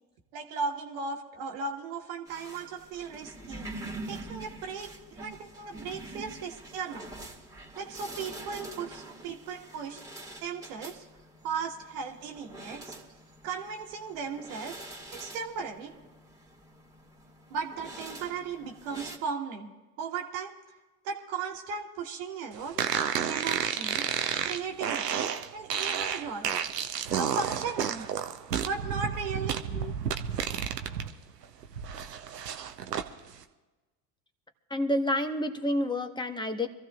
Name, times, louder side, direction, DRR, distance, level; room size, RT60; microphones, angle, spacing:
voice 1, 0.3-3.7 4.1-7.1 7.8-10.0 10.4-11.0 11.4-12.9 13.4-14.8 15.1-15.9 17.5-19.7 20.0-20.5 21.0-22.9 23.2-24.1 24.4-25.2 25.5-26.5 27.1-28.0 28.6-29.6, right 5 dB, 65° right, 2 dB, 1.5 m, -36 dB
sound 1, 2.3-19.2, right 2 dB, 5° right, 2.0 m, -45 dB
sound 2, 22.8-31.1 31.4-33.1, right 8 dB, 90° right, 0.7 m, -31 dB
voice 2, 34.7-36.7, left 1 dB, 10° left, 7 dB, 1.1 m, -29 dB
25.5 x 14.5 x 2.4 m, 1.2 s
figure-of-eight pair, 65°, 47 cm